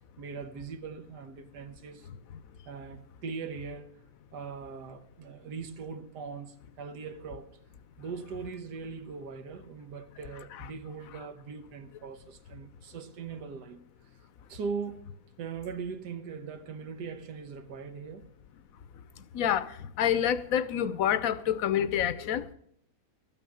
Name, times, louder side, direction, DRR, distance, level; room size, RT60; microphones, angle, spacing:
voice 1, 0.2-2.1 2.6-3.9 4.3-7.5 8.0-13.8 14.5-15.1 15.4-18.3, right 5 dB, 80° right, 1.6 m, -40 dB
voice 2, 19.3-22.5, left 9 dB, 65° left, 1.0 m, -28 dB
13.0 x 9.2 x 7.0 m
omnidirectional pair, 1.7 m